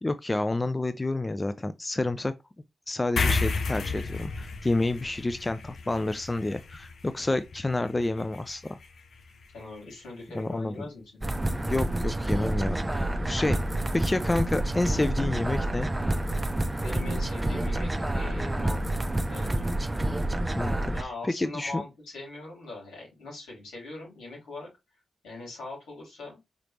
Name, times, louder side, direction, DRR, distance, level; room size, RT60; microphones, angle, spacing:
voice 1, 0.0-2.3 2.9-8.8 10.3-10.9 11.5-15.9 20.6-20.9 21.2-21.8, left 2 dB, 30° left, 0.5 m, -29 dB
sound 1, 3.2-9.9, left 4 dB, 70° left, 0.7 m, -33 dB
voice 2, 9.5-11.1 16.8-19.0 19.3-19.7 20.9-24.7 25.2-26.4, left 2 dB, 90° left, 3.3 m, -41 dB
sound 2, 11.2-21.0, right 1 dB, 20° right, 0.6 m, -28 dB
5.1 x 3.3 x 2.9 m
supercardioid pair, 40°, 0 cm